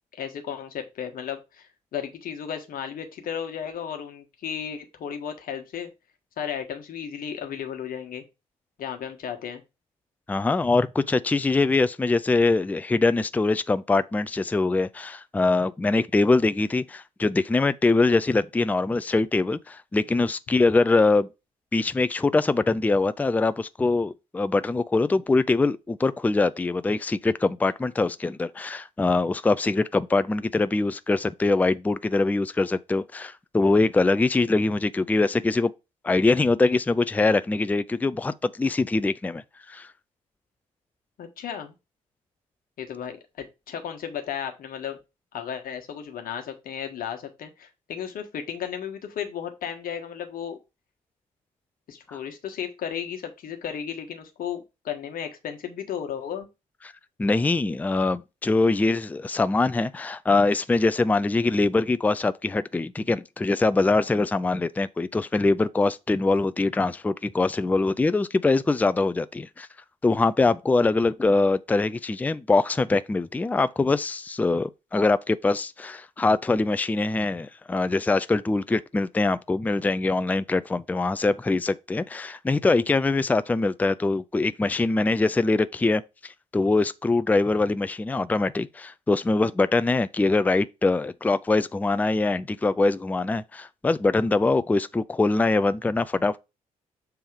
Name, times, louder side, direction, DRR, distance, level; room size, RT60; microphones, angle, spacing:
voice 1, 0.2-5.9 6.4-8.2 8.8-9.6 41.2-41.7 42.8-45.0 45.3-50.6 51.9-56.5, left 8 dB, 50° left, 1.4 m, -34 dB
voice 2, 10.3-21.3 21.7-35.7 36.0-39.4 39.7-39.9 57.2-69.7 70.0-96.4, left 3 dB, 10° left, 0.4 m, -23 dB
7.0 x 3.4 x 5.0 m
figure-of-eight pair, 40°, 19 cm